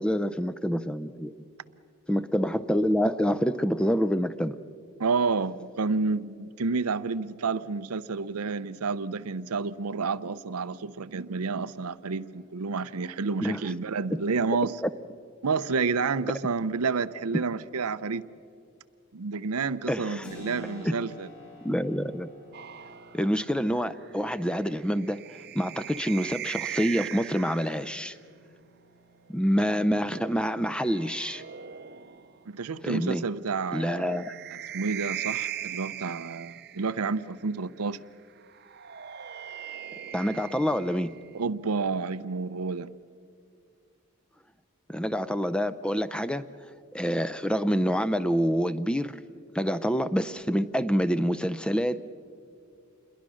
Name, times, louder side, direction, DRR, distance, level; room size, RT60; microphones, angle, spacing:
voice 1, 0.0-1.3 2.1-4.5 13.4-13.7 14.8-14.9 19.9-20.3 20.8-20.9 21.6-22.3 23.1-25.2 25.5-28.2 29.3-31.4 32.8-33.2 33.7-34.3 40.1-41.1 44.9-46.4 46.9-49.2 49.5-52.0, equal, 5° left, 13 dB, 0.5 m, -27 dB
voice 2, 5.0-14.8 15.4-18.3 19.1-21.3 32.5-34.2 34.7-38.0 41.3-42.9, right 4 dB, 85° right, 14 dB, 0.7 m, -30 dB
Keyboard (musical), 20.2-30.6, equal, 55° left, 7.6 m, -51 dB
sound 1, 22.5-28.1 29.4-32.4 33.8-37.2 38.5-41.4, right 10 dB, 45° right, 0.7 m, -40 dB
28.0 x 22.0 x 6.4 m, 2.3 s
head